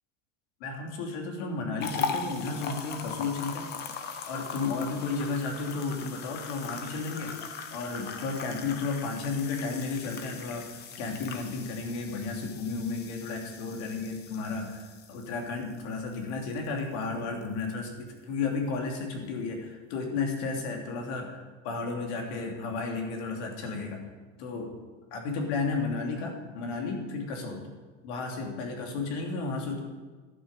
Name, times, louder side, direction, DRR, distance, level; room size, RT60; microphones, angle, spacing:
voice 1, 0.6-3.7 4.3-7.3 7.7-24.1 24.4-24.8 25.1-27.7 28.0-29.8, left 4 dB, 60° left, 1 dB, 2.8 m, -33 dB
sound 1, 1.8-17.0 17.4-17.6 18.1-18.2, left 6 dB, 25° left, 0.8 m, -39 dB
11.5 x 9.0 x 6.5 m, 1.3 s
cardioid pair, 180°, 37 cm